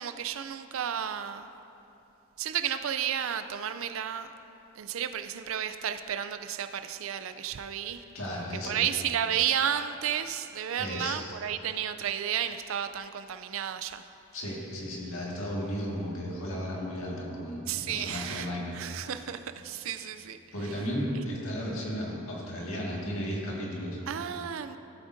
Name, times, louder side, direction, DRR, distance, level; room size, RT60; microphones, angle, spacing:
voice 1, 0.0-1.5 2.4-4.3 4.7-14.0 17.7-20.8 24.1-24.8, right 9 dB, 70° right, 10 dB, 0.4 m, -32 dB
voice 2, 7.9-8.9 10.8-11.2 14.3-19.1 20.5-24.0, equal, 75° left, -4 dB, 1.9 m, -34 dB
16.0 x 8.7 x 2.7 m, 2.9 s
head